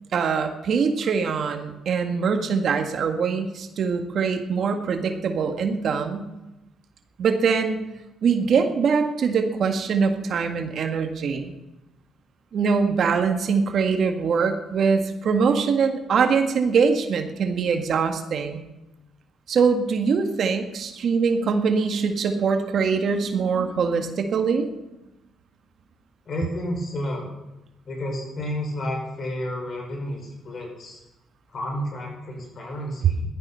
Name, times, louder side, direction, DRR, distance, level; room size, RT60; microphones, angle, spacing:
voice 1, 0.1-6.3 7.2-7.8 8.2-11.5 12.5-18.6 19.5-24.7, right 5 dB, 60° right, 6 dB, 1.7 m, -23 dB
voice 2, 26.3-27.3 27.9-31.0 31.5-33.2, equal, 50° left, 1 dB, 5.5 m, -31 dB
15.5 x 12.0 x 5.7 m, 0.98 s
cardioid pair, 90°, 0 cm